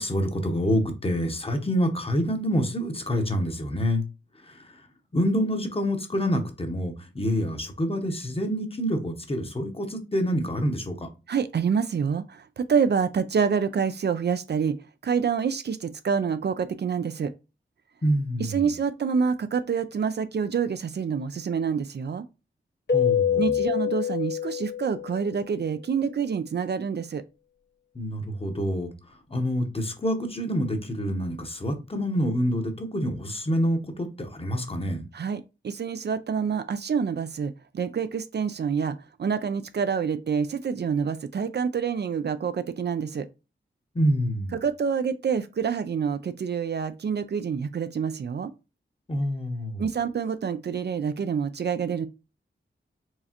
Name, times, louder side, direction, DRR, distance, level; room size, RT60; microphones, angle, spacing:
voice 1, 0.0-4.0 4.5-4.6 5.1-11.1 18.0-18.7 22.9-23.6 27.9-28.9 29.3-35.0 43.9-44.6 49.1-49.9, equal, 30° left, 0.9 m, -27 dB
voice 2, 11.3-14.8 15.0-17.3 18.4-22.2 23.4-27.2 35.1-43.3 44.5-48.5 49.8-52.1, right 6 dB, 60° right, 0.4 m, -27 dB
Keyboard (musical), 22.9-25.4, left 9 dB, 60° left, 0.8 m, -25 dB
4.7 x 3.2 x 2.9 m
wide cardioid pair, 90°, 19 cm